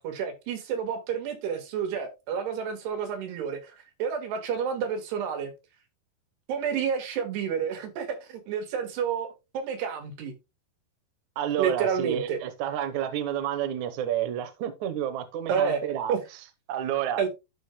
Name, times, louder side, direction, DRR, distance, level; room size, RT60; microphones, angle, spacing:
voice 1, 0.0-5.5 6.5-10.3 11.6-12.4 15.5-15.8 16.1-16.2 17.2-17.3, right 7 dB, 90° right, 3.7 m, -29 dB
voice 2, 11.4-16.1 16.7-17.2, right 10 dB, 65° right, 2.0 m, -30 dB
12.5 x 5.1 x 2.2 m
omnidirectional pair, 4.6 m